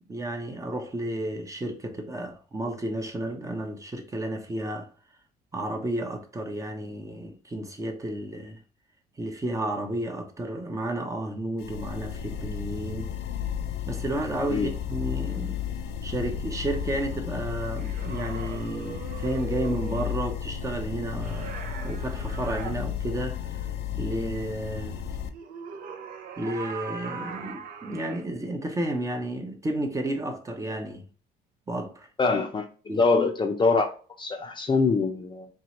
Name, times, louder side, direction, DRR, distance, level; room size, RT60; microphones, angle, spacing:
voice 1, 0.1-4.9 5.5-8.6 9.2-13.1 13.9-15.6 16.0-21.6 21.8-23.4 24.0-25.0 26.4-31.0 31.7-32.1 32.9-33.0, right 1 dB, 20° right, 0.8 m, -32 dB
sound 1, 11.6-25.3, left 8 dB, 85° left, 0.5 m, -33 dB
sound 2, 17.8-20.2 21.2-22.7 25.3-28.2, right 5 dB, 55° right, 0.7 m, -40 dB
voice 2, 32.2-32.7 33.0-35.5, left 4 dB, 30° left, 0.6 m, -24 dB
4.5 x 3.0 x 3.0 m
cardioid pair, 110°, 17 cm